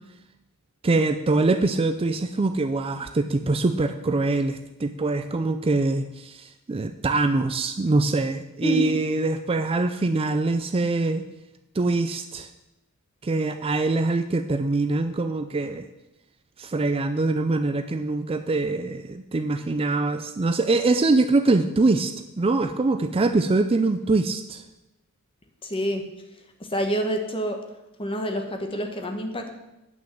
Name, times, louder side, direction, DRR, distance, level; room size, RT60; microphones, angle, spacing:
voice 1, 0.8-11.2 11.8-12.5 13.2-15.9 16.6-24.6, right 3 dB, 25° right, 9 dB, 0.4 m, -23 dB
voice 2, 25.6-26.0 26.7-27.6 28.0-29.6, equal, 25° left, 5 dB, 1.3 m, -27 dB
9.3 x 5.9 x 7.5 m, 0.95 s
head